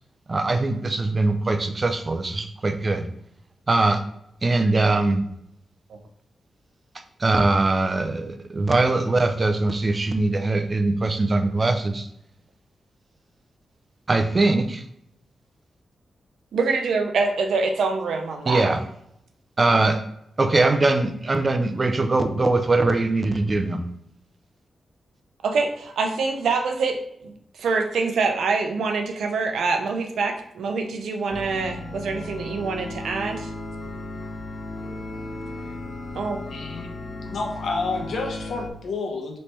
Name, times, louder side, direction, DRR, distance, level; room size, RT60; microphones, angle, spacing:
voice 1, 0.3-3.1 3.7-4.0 4.4-5.2 7.2-12.1 14.1-14.8 18.5-18.8 19.6-20.0 20.4-23.8, right 2 dB, 35° right, 7 dB, 0.5 m, -21 dB
voice 2, 16.5-18.6 25.4-27.0 27.2-33.5 36.1-36.4, right 4 dB, 85° right, 4 dB, 0.6 m, -25 dB
sound 1, 31.3-38.7, left 2 dB, 40° left, 0.5 m, -35 dB
voice 3, 36.5-36.9 37.2-39.4, left 3 dB, 75° left, 2 dB, 0.8 m, -29 dB
3.2 x 3.2 x 4.2 m, 0.76 s
cardioid pair, 90°, 0 cm